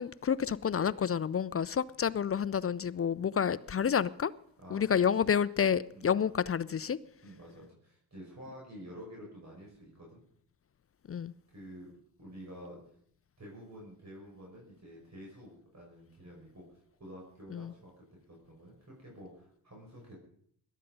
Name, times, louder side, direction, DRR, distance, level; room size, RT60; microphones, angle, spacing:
voice 1, 0.0-4.3 4.7-7.0 11.1-11.3 17.5-17.7, left 7 dB, 30° left, 0.5 m, -29 dB
voice 2, 4.6-5.3 5.9-6.2 7.2-10.2 11.5-11.9 12.2-12.8 13.4-16.6 17.0-17.9 18.3-20.2, equal, 35° right, 6.2 m, -49 dB
18.0 x 12.5 x 5.4 m
supercardioid pair, 65°, 46 cm